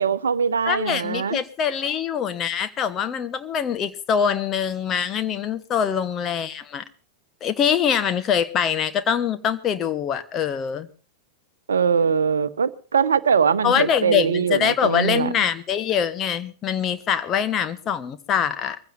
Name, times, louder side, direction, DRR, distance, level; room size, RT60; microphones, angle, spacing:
voice 1, 0.0-1.4 11.7-15.3, right 6 dB, 70° right, 0.8 m, -22 dB
voice 2, 0.6-6.8 7.4-10.9 13.6-18.8, left 8 dB, 30° left, 1.4 m, -24 dB
24.0 x 15.5 x 2.8 m
figure-of-eight pair, 90°, 0 cm